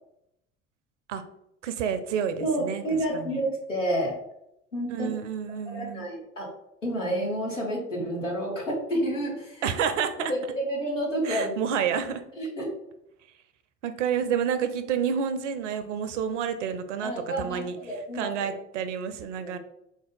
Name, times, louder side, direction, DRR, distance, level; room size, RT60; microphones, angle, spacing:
voice 1, 1.6-2.8 3.1-3.4 4.9-6.1 9.6-10.3 11.2-12.2 13.8-17.8 18.1-19.6, right 7 dB, 75° right, 10 dB, 0.5 m, -29 dB
voice 2, 2.4-4.2 4.7-5.1 5.7-6.5 6.8-9.6 10.3-11.5 12.4-12.7 17.0-18.5 19.3-19.6, right 1 dB, 90° left, -3 dB, 1.3 m, -29 dB
4.0 x 2.6 x 3.7 m, 0.80 s
figure-of-eight pair, 65°, 36 cm